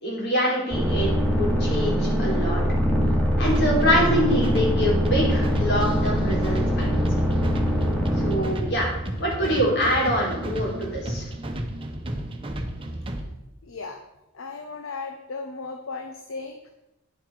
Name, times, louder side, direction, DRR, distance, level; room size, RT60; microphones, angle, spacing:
voice 1, 0.0-1.1 1.4-2.6 3.4-6.9 8.2-8.9 9.2-11.3, equal, 55° left, -3 dB, 3.7 m, -24 dB
sound 1, 0.7-9.1, equal, 5° left, 2.4 m, -23 dB
sound 2, 3.4-13.2, right 1 dB, 25° right, 1.0 m, -32 dB
voice 2, 13.6-14.0 14.3-16.7, left 4 dB, 70° left, 5 dB, 0.8 m, -36 dB
9.8 x 7.5 x 4.9 m, 0.95 s
head